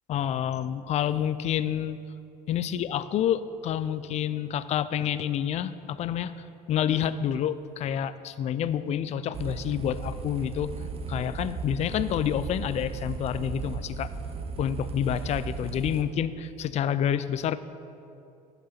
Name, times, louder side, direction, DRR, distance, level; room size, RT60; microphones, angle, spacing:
voice 1, 0.1-2.0 2.5-10.7 11.1-14.1 14.6-17.6, left 9 dB, 35° left, 13 dB, 0.4 m, -28 dB
sound 1, 9.3-16.0, right 5 dB, 30° right, 0.7 m, -36 dB
11.0 x 4.5 x 5.8 m, 2.6 s
figure-of-eight pair, 70°, 21 cm